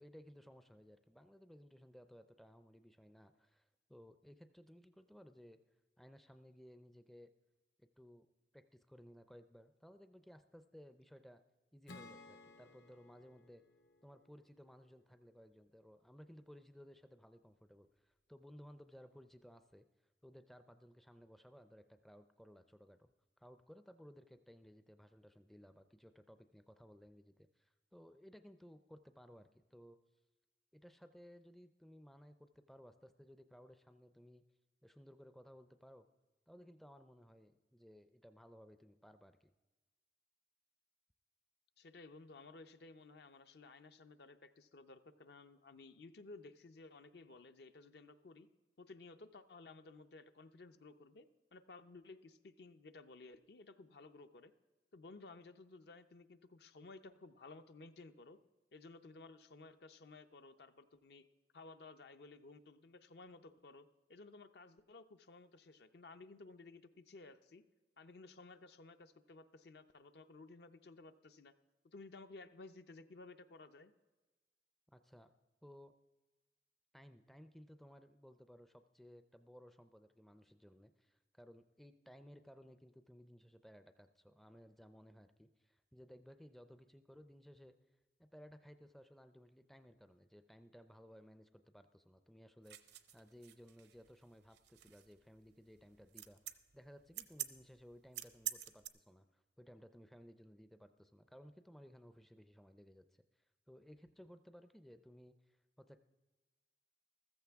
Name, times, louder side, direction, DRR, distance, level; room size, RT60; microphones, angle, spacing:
voice 1, 0.0-5.6 6.0-7.3 7.8-8.3 8.5-11.4 11.7-13.6 14.0-19.8 20.2-23.1 23.4-30.0 30.7-34.4 34.8-36.1 36.5-39.5 74.9-75.3 75.6-75.9 76.9-87.7 88.2-103.2 103.7-106.0, equal, ahead, 9 dB, 0.4 m, -59 dB
Acoustic guitar / Strum, 11.9-15.3, left 3 dB, 80° left, 1.3 m, -59 dB
voice 2, 41.8-48.5 48.8-54.5 54.9-58.4 58.7-61.3 61.5-67.6 68.0-71.5 71.8-73.9, left 3 dB, 65° left, 10 dB, 0.6 m, -56 dB
sound 1, 92.7-98.9, right 13 dB, 70° right, 0.6 m, -47 dB
14.0 x 14.0 x 3.5 m, 1.2 s
head